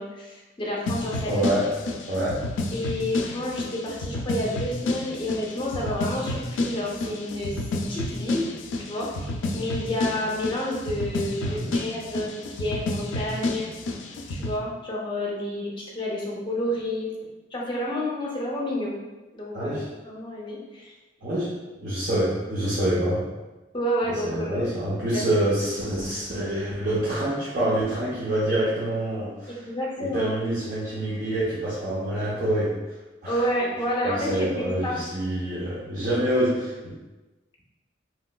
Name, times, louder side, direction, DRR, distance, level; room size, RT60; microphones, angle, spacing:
voice 1, 0.0-1.4 2.7-8.5 8.9-13.7 14.3-17.1 17.5-18.9 19.3-20.9 23.7-24.7 25.1-25.4 29.5-30.3 33.2-35.0, left 1 dB, 25° left, -3 dB, 0.6 m, -30 dB
sound 1, 0.9-14.6, left 2 dB, 85° left, 0.3 m, -30 dB
voice 2, 1.2-1.7 2.1-2.5 11.4-11.7 19.5-19.9 21.2-23.2 24.2-29.5 30.0-32.8 33.2-33.4 34.0-36.9, right 1 dB, 50° right, -10 dB, 0.6 m, -26 dB
3.0 x 2.8 x 2.2 m, 1.1 s
head